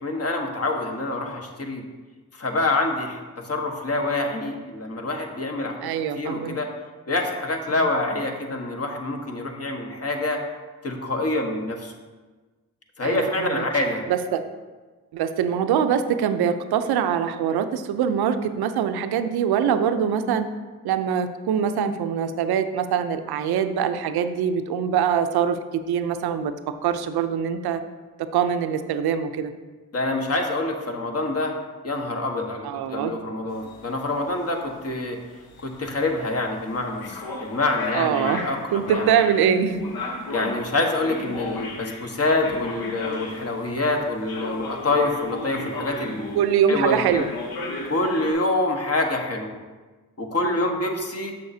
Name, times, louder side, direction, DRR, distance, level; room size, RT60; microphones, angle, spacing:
voice 1, 0.0-1.8 2.3-5.8 6.1-6.7 7.1-10.4 10.8-11.9 13.0-14.0 29.9-31.6 31.8-35.2 35.6-39.1 40.3-46.4 46.7-47.2 47.9-49.6 50.2-51.3, left 2 dB, 40° left, 2 dB, 1.3 m, -26 dB
voice 2, 5.8-6.6 13.0-13.6 14.1-14.4 15.1-20.5 20.8-26.5 26.8-27.8 28.3-29.5 32.6-33.1 37.9-38.4 38.7-39.8 46.4-47.3, right 8 dB, 85° right, 10 dB, 0.5 m, -23 dB
sound 1, 33.5-43.7 44.3-46.7 47.1-48.3, left 3 dB, 75° left, 1.0 m, -35 dB
6.9 x 6.7 x 2.7 m, 1.3 s
supercardioid pair, 45°, 37 cm